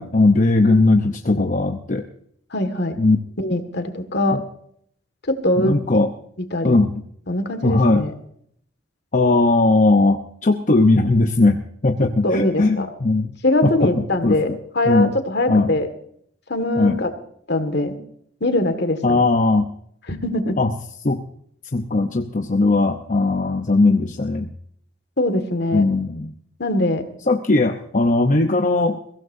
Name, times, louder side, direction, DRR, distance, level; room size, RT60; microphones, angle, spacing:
voice 1, 0.0-2.0 3.0-3.2 4.3-4.4 5.6-6.1 6.6-6.9 7.6-8.0 9.1-13.3 13.6-13.9 14.2-14.6 14.8-15.1 15.5-15.7 16.8-17.0 19.0-19.7 20.6-20.7 21.0-21.3 21.7-24.5 25.7-26.3 27.3-29.0, left 2 dB, 45° left, 5 dB, 0.8 m, -18 dB
voice 2, 2.5-2.9 3.4-4.4 5.3-5.7 6.5-6.8 7.3-8.1 12.2-12.9 13.4-14.5 14.8-15.9 16.5-17.1 17.5-18.0 18.4-19.2 20.1-20.6 25.2-25.8 26.6-27.0, left 1 dB, 60° left, 8 dB, 1.9 m, -22 dB
22.5 x 16.5 x 2.7 m, 0.67 s
head